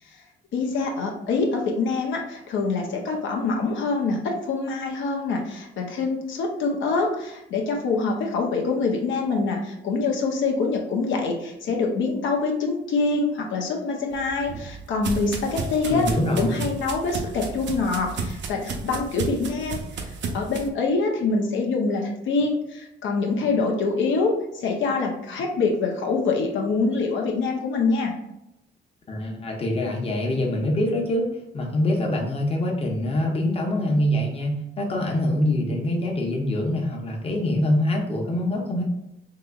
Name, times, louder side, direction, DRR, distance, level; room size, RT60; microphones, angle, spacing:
voice 1, 0.5-16.1 16.4-28.2, left 4 dB, 80° left, 1 dB, 0.7 m, -25 dB
sound 1, 14.1-20.7, right 4 dB, 65° right, 0.6 m, -33 dB
voice 2, 15.9-16.6 29.1-38.8, left 1 dB, 30° left, 0 dB, 0.7 m, -24 dB
3.8 x 2.8 x 2.3 m, 0.86 s
cardioid pair, 125°, 20 cm